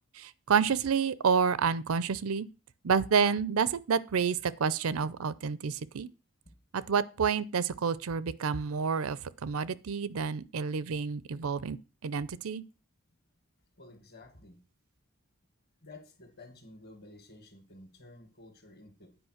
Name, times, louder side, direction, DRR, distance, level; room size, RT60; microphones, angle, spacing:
voice 1, 0.2-2.5 2.8-6.1 6.7-11.8 12.0-12.6, right 6 dB, 80° right, 0.5 m, -29 dB
voice 2, 13.8-14.6 15.8-19.2, left 2 dB, 45° left, 2.1 m, -52 dB
8.9 x 5.0 x 6.4 m
head